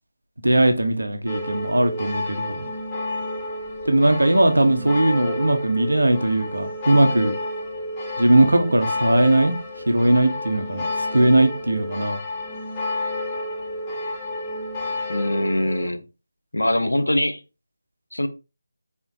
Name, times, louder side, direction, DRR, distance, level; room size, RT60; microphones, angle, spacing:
voice 1, 0.4-2.7 3.8-7.3 8.2-9.5 9.9-12.2, right 1 dB, 75° right, 1.1 m, -19 dB
sound 1, 1.3-15.9, left 2 dB, 20° left, 1.1 m, -30 dB
voice 2, 15.1-16.0 16.5-17.4 18.1-18.3, left 1 dB, 80° left, 0.8 m, -22 dB
4.2 x 4.0 x 2.8 m
figure-of-eight pair, 160°, 0 cm